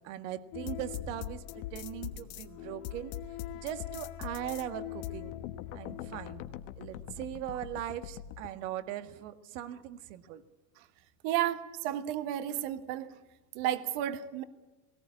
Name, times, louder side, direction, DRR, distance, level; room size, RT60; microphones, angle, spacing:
voice 1, 0.0-3.1 3.5-5.4 5.7-6.5 6.8-10.4, right 12 dB, 80° right, 11 dB, 1.7 m, -40 dB
sound 1, 0.5-8.5, left 11 dB, 70° left, 1.4 m, -41 dB
voice 2, 11.2-13.1 13.5-14.4, right 12 dB, 65° right, 11 dB, 1.6 m, -32 dB
18.0 x 18.0 x 9.7 m, 1.2 s
supercardioid pair, 145°, 37 cm